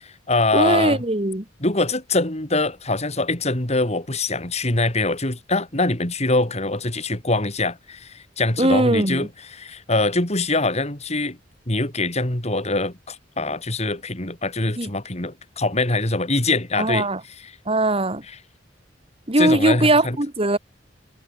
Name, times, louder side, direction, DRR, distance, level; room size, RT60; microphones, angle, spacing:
voice 1, 0.0-1.0 1.6-11.4 11.7-17.1 17.4-17.5 19.4-20.2, left 2 dB, 35° left, 3.9 m, -23 dB
voice 2, 0.5-1.4 8.6-9.3 14.8-14.9 16.8-17.2 17.7-18.2 19.3-20.6, right 2 dB, 30° right, 2.5 m, -20 dB
head